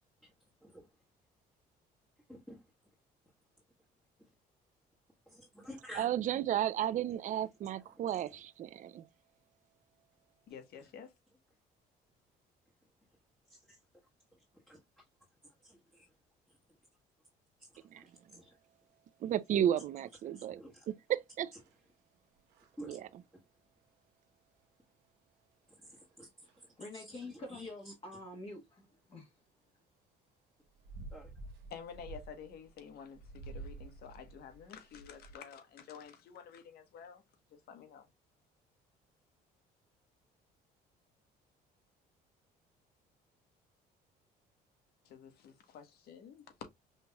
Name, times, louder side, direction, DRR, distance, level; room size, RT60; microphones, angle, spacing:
voice 1, 5.3-6.1 8.0-8.1 14.7-14.8 15.6-16.1 18.0-18.5 20.3-20.9 22.8-23.0 26.2-26.3 26.9-27.7 31.1-31.3, equal, 5° left, 1.3 m, -50 dB
voice 2, 6.0-9.0 17.9-18.0 19.2-20.6 20.9-21.5 22.9-23.1, right 11 dB, 50° right, 0.4 m, -33 dB
voice 3, 10.5-11.1 31.7-37.2 37.5-38.1 45.0-46.7, left 7 dB, 65° left, 1.2 m, -50 dB
sound 1, 21.5-21.8 22.4-22.7 25.9-26.0 26.5-26.7 30.7-35.4, right 3 dB, 80° right, 1.0 m, -50 dB
voice 4, 26.8-29.3, left 2 dB, 35° left, 1.4 m, -46 dB
5.5 x 2.9 x 2.2 m
cardioid pair, 110°, 17 cm